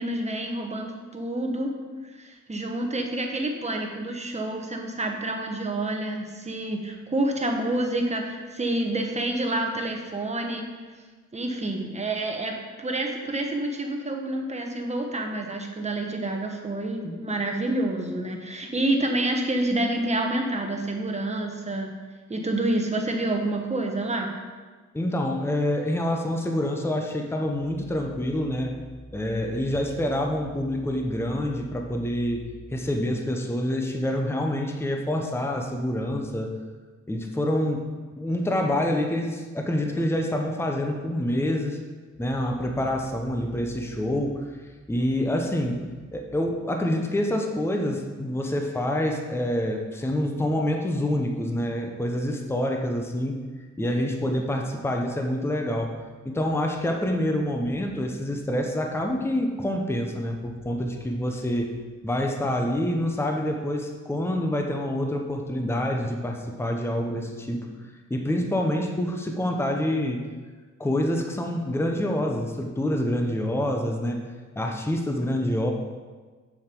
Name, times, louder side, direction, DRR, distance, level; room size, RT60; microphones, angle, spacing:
voice 1, 0.0-1.7 2.1-10.6 11.3-21.9 22.3-24.3, right 1 dB, 20° right, 2 dB, 1.1 m, -28 dB
voice 2, 24.9-28.7 29.1-36.5 37.1-37.8 38.2-41.8 42.2-44.4 44.9-45.8 46.1-53.4 53.8-55.9 56.2-61.7 62.0-67.6 68.1-70.2 70.8-74.2 74.6-75.7, left 1 dB, 10° left, 2 dB, 0.8 m, -27 dB
7.2 x 7.0 x 4.4 m, 1.4 s
wide cardioid pair, 110°, 30 cm